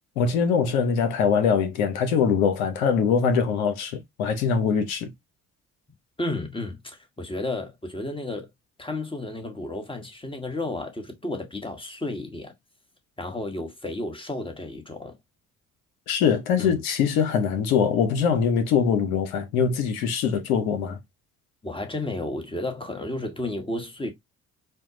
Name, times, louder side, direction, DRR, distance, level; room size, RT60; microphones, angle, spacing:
voice 1, 0.2-5.1 16.1-21.0, left 6 dB, 80° left, 0.9 m, -23 dB
voice 2, 6.2-8.5 8.8-12.5 13.2-15.1 16.6-16.8 21.6-24.1, left 2 dB, 10° left, 1.2 m, -32 dB
4.4 x 2.2 x 2.9 m
hypercardioid pair, 45°, 41 cm